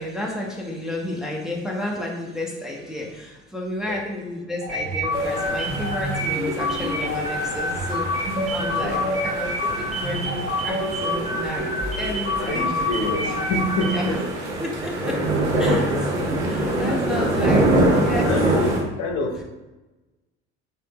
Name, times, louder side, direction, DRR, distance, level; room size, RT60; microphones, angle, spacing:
voice 1, 0.0-13.4 13.8-14.1 14.6-15.1 15.6-15.9 16.3-18.3, left 1 dB, ahead, -2 dB, 0.7 m, -31 dB
sound 1, 4.6-14.2, left 1 dB, 20° right, 1.5 m, -27 dB
sound 2, 5.1-18.8, right 1 dB, 75° right, 0.9 m, -25 dB
voice 2, 8.7-9.1 12.4-14.2 15.7-15.9 16.6-17.3 18.1-19.4, left 2 dB, 55° left, 1 dB, 0.8 m, -27 dB
3.2 x 2.8 x 3.0 m, 1.1 s
hypercardioid pair, 65°, 34 cm